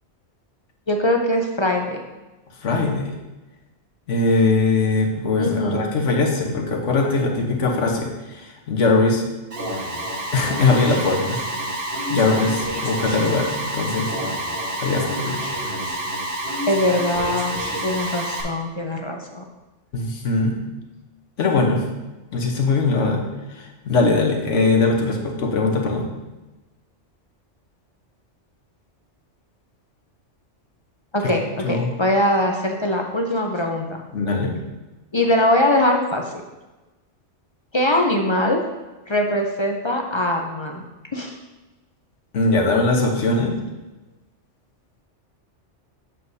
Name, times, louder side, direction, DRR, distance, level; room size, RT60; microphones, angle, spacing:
voice 1, 0.9-2.0 5.4-5.9 16.7-19.4 31.1-34.0 35.1-36.2 37.7-38.6 39.1-40.8 41.1-41.4, left 1 dB, 35° left, 2 dB, 0.5 m, -22 dB
voice 2, 2.6-3.1 4.1-9.3 10.3-11.7 12.1-14.2 14.8-15.4 19.9-20.6 21.4-21.9 22.3-26.1 31.6-31.9 34.1-34.6 42.3-43.6, left 3 dB, 85° left, 1 dB, 1.4 m, -21 dB
Alarm, 9.5-18.4, right 1 dB, 50° right, 1.7 m, -28 dB
8.0 x 7.5 x 2.7 m, 1.1 s
omnidirectional pair, 1.2 m